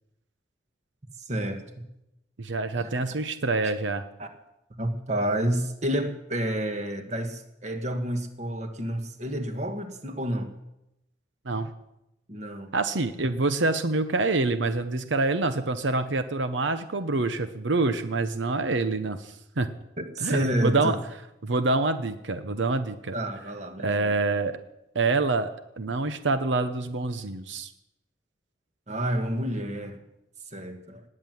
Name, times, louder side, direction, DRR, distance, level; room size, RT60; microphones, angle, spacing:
voice 1, 1.2-1.9 3.6-3.7 4.2-4.3 4.8-10.5 12.3-12.7 20.0-21.0 23.1-24.1 28.9-30.0 30.5-31.0, right 1 dB, 40° right, 6 dB, 1.7 m, -29 dB
voice 2, 2.4-4.0 11.4-11.7 12.7-19.7 20.2-21.0 21.4-23.1 23.8-24.6 24.9-25.5 25.8-27.7, right 3 dB, 90° right, 10 dB, 0.9 m, -26 dB
19.0 x 7.7 x 9.2 m, 0.87 s
head